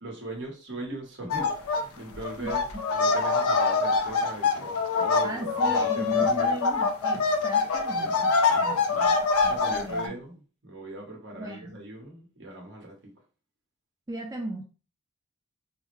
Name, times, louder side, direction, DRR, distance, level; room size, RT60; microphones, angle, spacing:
voice 1, 0.0-4.7 5.0-6.5 8.0-9.1 9.4-12.9, right 2 dB, 55° right, 1.1 m, -40 dB
sound 1, 1.3-1.8 2.1-10.1, left 4 dB, 70° left, 0.5 m, -24 dB
voice 2, 5.2-8.3 8.6-9.2 9.4-10.1 11.3-11.8 14.1-14.6, right 1 dB, 15° right, 0.3 m, -36 dB
3.5 x 2.1 x 3.1 m
head